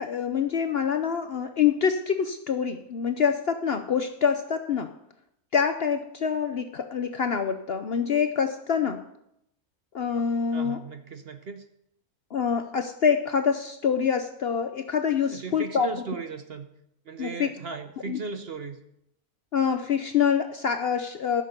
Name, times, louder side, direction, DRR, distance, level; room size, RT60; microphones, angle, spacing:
voice 1, 0.0-4.9 5.5-9.0 9.9-10.8 12.3-15.9 17.2-17.5 18.1-18.2 19.5-21.4, left 7 dB, 55° left, 7 dB, 0.7 m, -26 dB
voice 2, 10.5-11.6 15.3-16.7 17.1-18.8, right 5 dB, 50° right, 8 dB, 0.9 m, -36 dB
14.0 x 6.7 x 6.6 m, 0.78 s
omnidirectional pair, 1.6 m